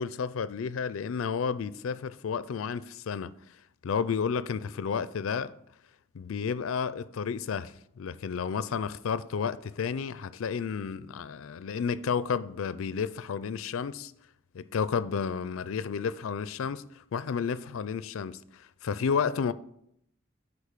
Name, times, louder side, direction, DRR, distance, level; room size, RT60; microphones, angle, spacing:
voice 1, 0.0-3.3 3.8-5.5 6.1-14.1 14.5-16.8 17.1-19.5, left 6 dB, 80° left, 0.4 m, -31 dB
8.5 x 4.9 x 6.5 m
head